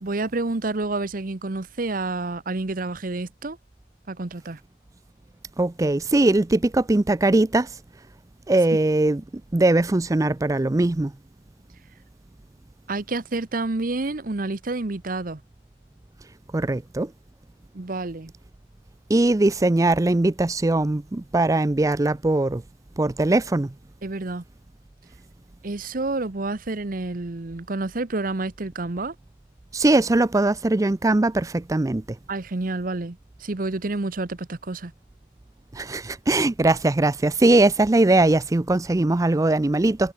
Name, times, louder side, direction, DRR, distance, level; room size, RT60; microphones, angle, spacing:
voice 1, 0.0-3.6 4.1-4.6 12.9-15.4 17.7-18.3 24.0-24.4 25.6-29.1 32.3-34.9, right 2 dB, 50° right, 0.9 m, -29 dB
voice 2, 5.6-7.7 8.5-9.2 9.5-11.1 16.5-17.1 19.1-22.6 23.0-23.7 29.7-32.0 35.7-40.1, right 2 dB, 20° right, 0.4 m, -20 dB
head